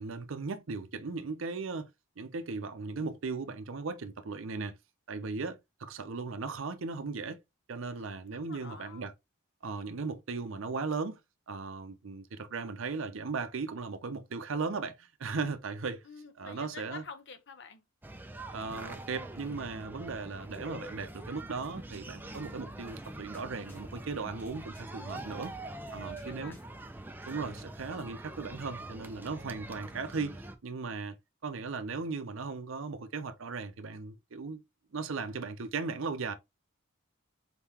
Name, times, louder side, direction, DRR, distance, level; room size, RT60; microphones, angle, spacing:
voice 1, 0.0-4.8 5.1-7.4 7.7-9.1 9.6-11.2 11.5-16.0 16.4-17.0 18.5-25.6 25.9-26.6 27.3-34.6 34.9-36.3, right 4 dB, 65° right, 0.6 m, -37 dB
voice 2, 8.0-9.0 16.0-17.8 25.0-25.4 25.9-26.5, left 5 dB, 55° left, 0.8 m, -49 dB
sound 1, 18.0-30.5, right 2 dB, 10° right, 0.4 m, -44 dB
sound 2, 21.2-28.6, equal, 10° left, 1.1 m, -61 dB
4.1 x 3.8 x 2.8 m
head